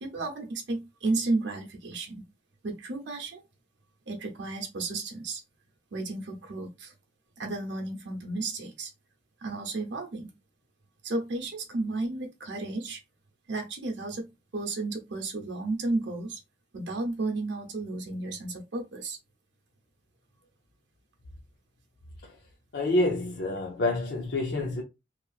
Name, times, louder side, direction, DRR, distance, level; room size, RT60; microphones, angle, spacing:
voice 1, 0.0-2.2 2.6-3.4 4.1-5.4 5.9-6.9 7.4-8.9 9.4-10.3 11.0-13.0 13.5-14.3 14.5-16.4 16.7-19.2, right 2 dB, 80° right, 0.8 m, -33 dB
voice 2, 22.7-24.8, left 2 dB, 65° left, 0.5 m, -28 dB
2.9 x 2.4 x 2.3 m
head